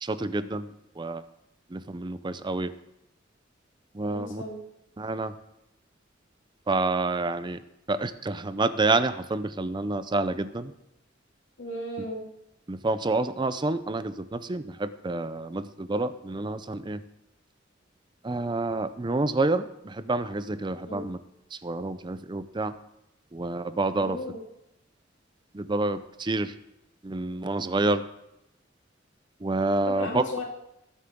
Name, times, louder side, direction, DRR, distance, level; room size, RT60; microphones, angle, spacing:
voice 1, 0.0-1.2 1.7-2.7 3.9-4.4 5.0-5.3 6.7-7.6 7.9-10.7 12.7-17.0 18.2-21.2 21.5-22.7 23.3-24.2 25.5-26.5 27.0-28.0 29.4-30.2, right 2 dB, 25° right, 13 dB, 0.5 m, -28 dB
voice 2, 4.1-4.6 11.6-12.2 20.9-21.0 24.0-24.4 29.8-30.4, left 1 dB, 75° left, -1 dB, 2.7 m, -35 dB
18.5 x 7.7 x 3.7 m, 0.86 s
head